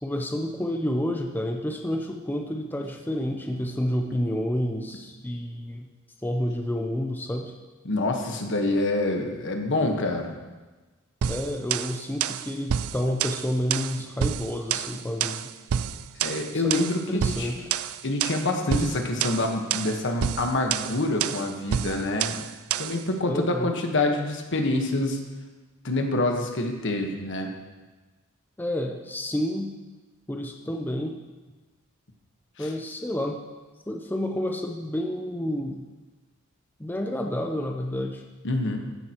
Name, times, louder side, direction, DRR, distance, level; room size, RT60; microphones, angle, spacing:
voice 1, 0.0-5.9 6.2-7.6 11.3-15.5 16.5-17.7 23.3-23.7 28.6-29.7 30.3-31.2 32.6-33.4 33.9-35.9 36.8-38.2, left 1 dB, 10° left, 3 dB, 0.5 m, -29 dB
voice 2, 7.8-10.4 16.2-17.5 18.0-22.5 22.8-25.2 25.8-27.5 32.6-32.7 38.4-38.8, left 2 dB, 60° left, 3 dB, 1.3 m, -26 dB
sound 1, 11.2-23.0, right 9 dB, 80° right, 0.4 m, -29 dB
14.5 x 10.5 x 3.0 m, 1.2 s
head